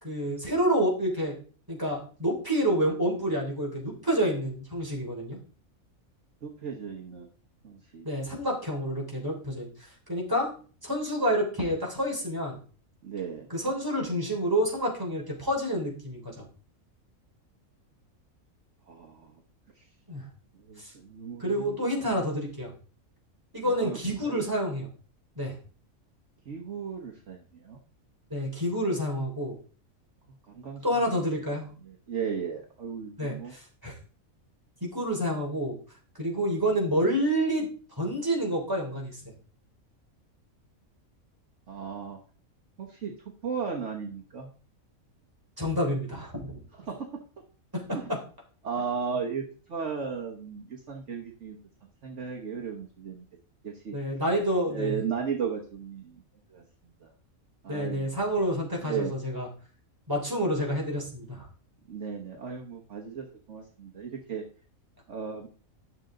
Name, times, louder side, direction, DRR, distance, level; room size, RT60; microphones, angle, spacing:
voice 1, 0.0-1.4 1.7-5.4 8.0-10.5 10.8-12.6 13.5-16.5 20.1-20.2 20.8-20.9 21.4-22.7 23.5-24.9 25.4-25.6 28.3-29.6 30.8-31.7 33.2-33.9 34.8-35.8 36.2-37.7 38.0-39.3 45.6-46.6 53.9-55.0 57.7-59.5 60.1-61.5, equal, 15° right, -2 dB, 3.2 m, -28 dB
voice 2, 6.4-7.3 7.6-8.1 13.0-13.5 18.9-19.4 19.8-19.9 20.5-21.8 23.6-24.0 24.2-24.5 26.4-27.8 30.5-31.1 31.8-33.5 41.7-42.2 42.8-44.5 46.8-47.1 47.9-48.1 48.6-53.2 53.6-53.9 54.7-56.2 56.5-57.1 57.6-58.1 58.8-59.1 61.9-64.4 65.1-65.5, right 6 dB, 60° right, 0 dB, 1.5 m, -36 dB
11.0 x 6.5 x 3.8 m, 0.39 s
omnidirectional pair, 1.5 m